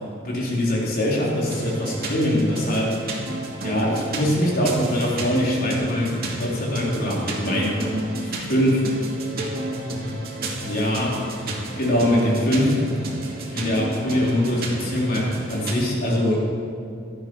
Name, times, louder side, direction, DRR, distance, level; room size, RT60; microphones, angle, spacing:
voice 1, 0.2-2.9 3.6-7.8 8.5-8.8 10.6-11.2 11.8-12.7 13.5-16.4, left 1 dB, 50° left, -4 dB, 3.7 m, -22 dB
sound 1, 1.5-15.7, right 1 dB, 50° right, 2.5 m, -31 dB
17.5 x 12.5 x 4.7 m, 2.5 s
head